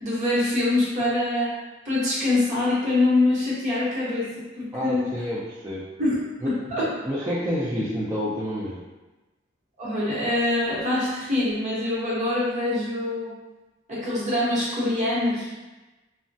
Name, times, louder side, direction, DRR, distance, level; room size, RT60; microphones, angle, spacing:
voice 1, 0.0-1.6 1.8-4.2 4.6-5.0 6.0-6.9 9.8-13.3 13.9-15.6, left 2 dB, 35° right, -8 dB, 0.9 m, -24 dB
voice 2, 4.7-5.9 6.4-6.6 7.0-8.8, equal, 15° right, -9 dB, 0.3 m, -28 dB
3.0 x 2.1 x 2.6 m, 1.1 s
head